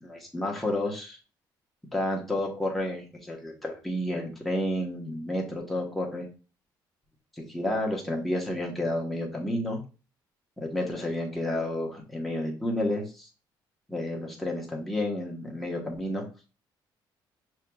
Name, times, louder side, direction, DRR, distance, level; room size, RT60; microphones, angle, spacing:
voice 1, 0.0-1.2 1.9-6.3 7.4-9.8 10.6-13.3 13.9-16.2, left 1 dB, ahead, -2 dB, 1.0 m, -31 dB
6.5 x 2.9 x 2.3 m, 0.34 s
cardioid pair, 160°, 8 cm